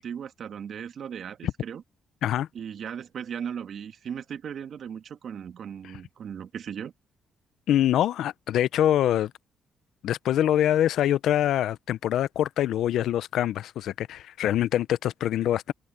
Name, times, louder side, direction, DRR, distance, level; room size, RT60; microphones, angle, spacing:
voice 1, 0.0-1.8 2.5-6.9, right 8 dB, 60° right, 1.7 m, -37 dB
voice 2, 7.7-9.3 10.0-15.7, left 11 dB, 75° left, 0.6 m, -24 dB
cardioid pair, 90°, 0 cm